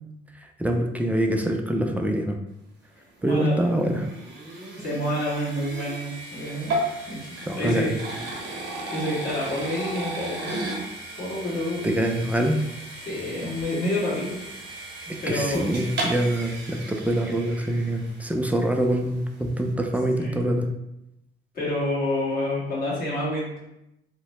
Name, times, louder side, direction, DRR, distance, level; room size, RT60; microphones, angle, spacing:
voice 1, 0.6-2.4 3.2-4.1 7.5-8.0 11.8-12.6 15.3-20.7, right 1 dB, 5° right, 2 dB, 0.3 m, -24 dB
voice 2, 3.2-3.8 4.5-6.8 7.1-7.9 8.9-10.6 11.2-12.0 13.0-14.4 15.0-15.6 20.1-20.4 21.5-23.6, left 1 dB, 45° left, -7 dB, 1.4 m, -28 dB
sound 1, 3.2-18.4, right 1 dB, 65° right, 0.9 m, -35 dB
2.8 x 2.1 x 3.0 m, 0.88 s
cardioid pair, 90°, 20 cm